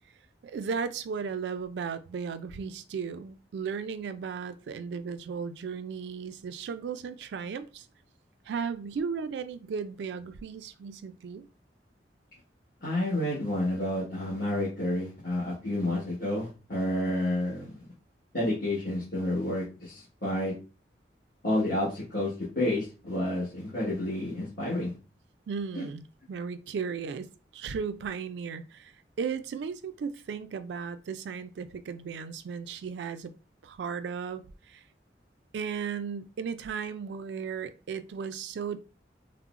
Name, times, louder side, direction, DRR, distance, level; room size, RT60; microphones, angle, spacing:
voice 1, 0.4-7.9 8.5-11.5 25.5-33.3 33.6-34.8 35.5-38.8, right 6 dB, 80° right, 12 dB, 0.3 m, -35 dB
voice 2, 12.8-17.8 18.3-20.5 21.4-24.9 25.7-25.9, left 1 dB, 55° left, -10 dB, 1.4 m, -30 dB
3.6 x 2.0 x 2.4 m, 0.33 s
head